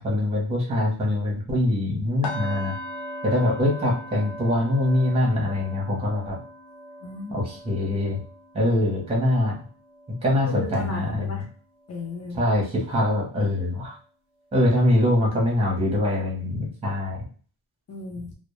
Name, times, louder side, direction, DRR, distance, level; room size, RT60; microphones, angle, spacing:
voice 1, 0.0-2.8 3.2-6.4 7.3-8.2 8.5-9.5 10.2-11.4 12.3-14.0 14.5-17.2, left 1 dB, 15° right, -3 dB, 0.6 m, -23 dB
sound 1, 2.2-12.2 12.5-12.8 13.2-13.4, left 1 dB, 85° left, 0.6 m, -40 dB
voice 2, 7.0-7.5 10.5-11.5 11.9-12.4 17.9-18.3, left 3 dB, 40° left, 0 dB, 0.6 m, -35 dB
2.1 x 2.0 x 2.9 m, 0.42 s
wide cardioid pair, 175°, 40 cm